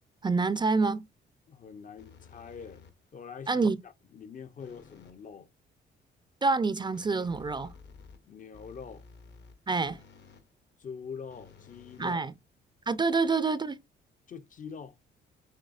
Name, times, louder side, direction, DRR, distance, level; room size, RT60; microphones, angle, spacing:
voice 1, 0.2-1.1 3.5-3.8 6.4-7.7 9.7-10.0 12.0-12.3 12.9-13.8, right 4 dB, 25° right, 0.5 m, -27 dB
voice 2, 1.5-2.9 3.1-5.5 8.3-9.1 10.8-12.3 14.3-15.0, left 6 dB, 40° left, 0.6 m, -44 dB
sound 1, 2.0-3.2 4.6-5.3 6.9-10.5 11.3-12.8, left 5 dB, 60° left, 1.1 m, -54 dB
6.5 x 3.1 x 2.4 m
cardioid pair, 90°, 20 cm